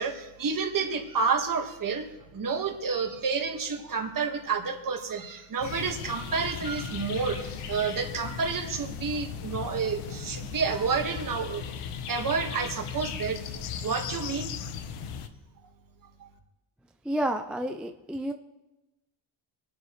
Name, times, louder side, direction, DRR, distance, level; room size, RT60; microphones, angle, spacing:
voice 1, 0.0-2.1 2.3-11.6 12.1-13.4 13.8-14.5, right 5 dB, 40° right, 4 dB, 1.7 m, -29 dB
sound 1, 5.6-15.3, left 7 dB, 85° left, 1.1 m, -37 dB
voice 2, 17.0-18.3, right 1 dB, ahead, 5 dB, 0.3 m, -30 dB
23.0 x 9.8 x 3.2 m, 1.0 s
cardioid pair, 140°, 50 cm